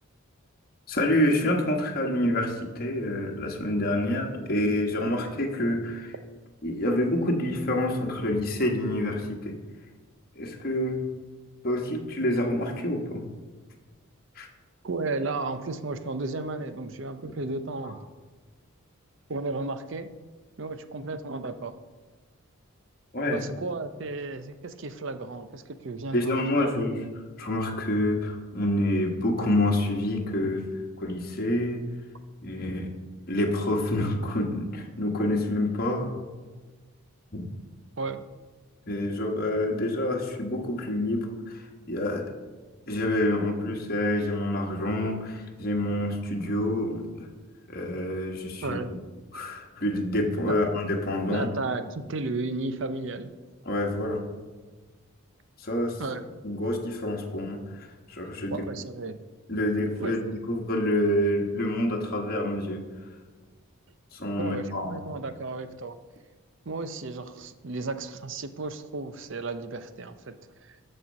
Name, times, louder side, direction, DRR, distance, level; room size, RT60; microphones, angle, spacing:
voice 1, 0.9-6.1 6.6-9.5 10.3-11.0 11.6-13.3 14.3-14.5 23.1-23.4 26.1-27.0 27.4-30.7 31.0-31.8 32.4-32.9 33.3-36.1 37.3-37.5 38.9-42.3 42.9-47.3 47.7-48.8 49.3-51.5 53.6-54.2 55.6-56.0 56.4-58.5 59.5-60.2 60.5-62.8 64.1-65.0, left 1 dB, 40° left, 0 dB, 1.3 m, -27 dB
voice 2, 14.8-18.0 19.3-20.1 20.6-21.7 23.3-26.8 38.0-38.2 48.6-49.0 50.5-50.6 51.3-53.3 56.0-56.3 58.5-59.2 60.0-60.1 64.4-66.0 66.7-70.4 70.6-70.8, right 3 dB, 55° right, 11 dB, 0.6 m, -33 dB
12.5 x 4.4 x 6.3 m, 1.3 s
head